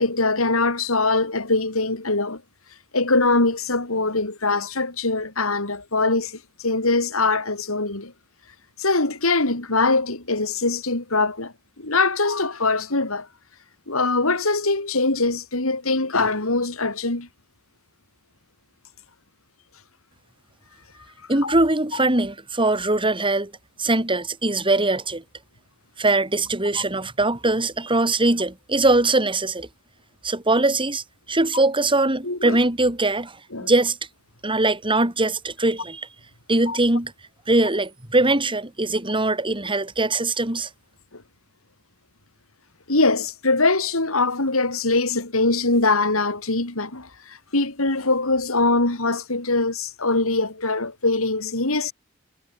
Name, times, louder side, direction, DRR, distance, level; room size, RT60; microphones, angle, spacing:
voice 1, 0.0-2.4 2.9-8.1 8.8-13.3 13.9-17.3 21.4-21.5 32.2-32.6 33.5-33.7 36.7-36.8 41.1-41.2 42.9-51.9, left 3 dB, 75° left, 3.9 m, -22 dB
voice 2, 21.3-23.5 23.8-25.2 26.0-29.7 30.2-34.0 34.4-36.1 36.5-37.1 37.5-40.7, right 2 dB, 25° right, 4.6 m, -21 dB
head